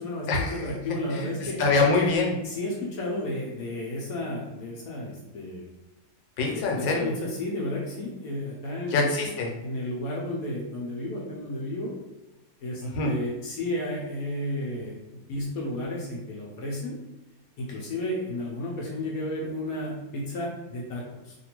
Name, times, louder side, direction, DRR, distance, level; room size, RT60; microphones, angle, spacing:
voice 1, 0.0-1.6 2.4-5.7 6.5-9.1 9.6-11.9 12.6-16.9 17.6-21.4, left 1 dB, 65° left, -3 dB, 0.9 m, -32 dB
voice 2, 1.6-2.4 6.4-7.1 8.9-9.5 12.9-13.1, left 3 dB, 90° left, 1 dB, 1.4 m, -24 dB
2.9 x 2.6 x 2.9 m, 1.0 s
omnidirectional pair, 1.9 m